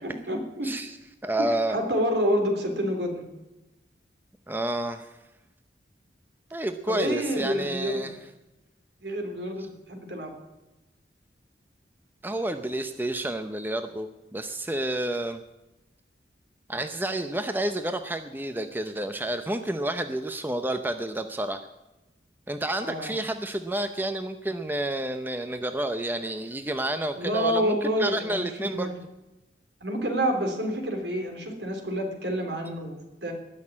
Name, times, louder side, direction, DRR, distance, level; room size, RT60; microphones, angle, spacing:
voice 1, 0.0-0.7 1.4-3.2 6.9-8.1 9.0-10.3 22.8-23.1 27.1-29.0 29.8-33.3, equal, 70° right, 4 dB, 3.4 m, -28 dB
voice 2, 0.6-1.0 1.2-1.8 4.5-5.1 6.5-8.2 12.2-15.4 16.7-21.7 22.5-28.9, right 1 dB, 10° right, 8 dB, 0.7 m, -30 dB
19.5 x 6.6 x 9.7 m, 1.0 s
head